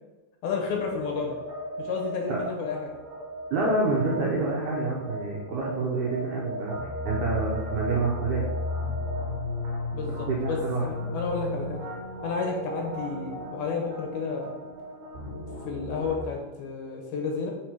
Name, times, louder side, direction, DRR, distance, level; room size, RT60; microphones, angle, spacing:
voice 1, 0.4-1.4 1.8-2.9 9.9-11.8 12.2-14.5 15.3-17.5, left 5 dB, 75° left, 1 dB, 2.7 m, -31 dB
sound 1, 0.7-16.2, left 1 dB, 65° right, 3.0 m, -35 dB
voice 2, 3.5-8.5 10.1-10.9, right 3 dB, 90° right, -3 dB, 1.7 m, -28 dB
6.2 x 4.1 x 4.5 m, 1.1 s
omnidirectional pair, 4.7 m